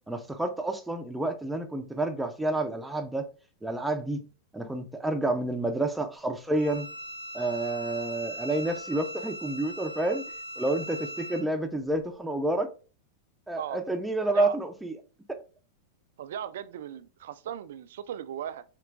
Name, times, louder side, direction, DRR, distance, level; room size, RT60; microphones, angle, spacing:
voice 1, 0.1-3.3 3.6-4.2 4.5-6.9 7.3-10.2 10.6-12.7 13.5-14.9 15.3-15.4, right 2 dB, 5° right, 0.5 m, -29 dB
Bowed string instrument, 6.5-11.4, equal, 70° left, 2.0 m, -40 dB
voice 2, 14.2-14.6 16.2-18.6, right 10 dB, 75° right, 0.3 m, -37 dB
4.4 x 2.9 x 2.4 m
hypercardioid pair, 115°, 0 cm